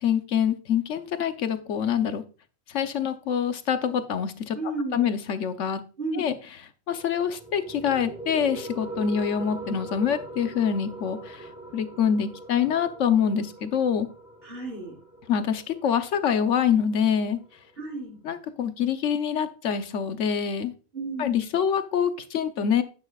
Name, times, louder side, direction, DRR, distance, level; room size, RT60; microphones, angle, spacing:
voice 1, 0.0-2.2 2.7-4.6 4.9-5.8 6.1-6.4 6.9-11.4 11.7-14.1 15.3-17.4 18.2-20.7 21.2-22.8, left 8 dB, 65° left, 9 dB, 1.2 m, -25 dB
voice 2, 4.5-5.1 6.0-6.4 14.4-15.0 17.8-18.2 20.9-21.6, right 2 dB, 45° right, -3 dB, 4.8 m, -33 dB
sound 1, 6.9-17.9, right 2 dB, 5° right, 2.1 m, -42 dB
10.5 x 10.0 x 2.4 m, 0.36 s
omnidirectional pair, 1.4 m